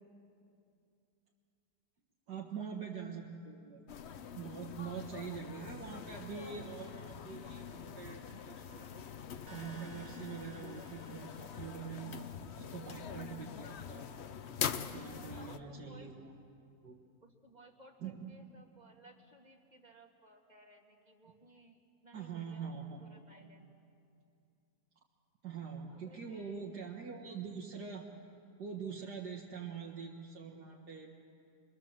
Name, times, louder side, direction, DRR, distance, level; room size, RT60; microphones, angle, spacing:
voice 1, 2.3-3.8 4.4-9.0 9.5-14.1 14.9-16.3 16.8-17.0 18.0-18.4 22.1-23.0 25.4-28.1 28.6-31.1, right 6 dB, 85° right, -1 dB, 2.2 m, -44 dB
sound 1, 3.9-15.6, left 7 dB, 50° left, 0.9 m, -44 dB
sound 2, 9.5-13.5, right 2 dB, 45° right, 2.1 m, -59 dB
voice 2, 15.3-16.3 17.2-22.7 23.0-23.8 25.7-26.7, right 1 dB, 25° right, 1 dB, 2.1 m, -60 dB
26.0 x 22.5 x 7.4 m, 2.5 s
omnidirectional pair, 1.7 m